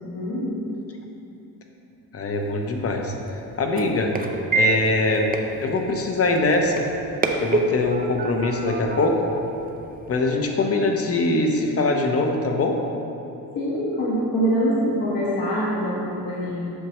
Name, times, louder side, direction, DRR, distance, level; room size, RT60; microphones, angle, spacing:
voice 1, 0.1-0.7 4.1-4.3 13.5-16.7, equal, 65° left, -8 dB, 1.4 m, -24 dB
voice 2, 2.1-3.1 3.6-4.1 4.5-5.3 5.6-6.8 7.4-9.3 10.1-12.8, left 2 dB, 40° left, 2 dB, 0.8 m, -22 dB
sound 1, 2.3-10.2, right 3 dB, 25° right, 0.5 m, -29 dB
8.0 x 6.0 x 3.0 m, 2.8 s
cardioid pair, 110°, 37 cm